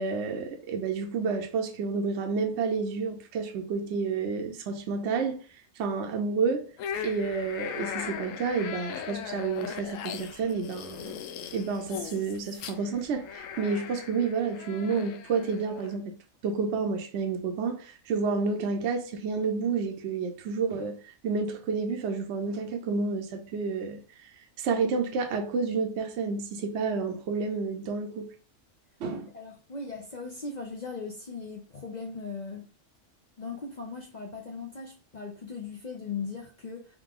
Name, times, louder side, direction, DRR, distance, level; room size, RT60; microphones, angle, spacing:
voice 1, 0.0-5.4 5.8-6.7 7.0-11.2 11.5-16.1 16.4-24.0 24.6-28.3 29.0-29.3, right 4 dB, 60° right, 0.9 m, -30 dB
sound 1, 6.8-16.0, left 8 dB, 75° left, 0.9 m, -39 dB
voice 2, 29.1-32.6 33.4-36.9, left 4 dB, 45° left, 0.6 m, -38 dB
3.6 x 3.2 x 3.7 m
omnidirectional pair, 1.4 m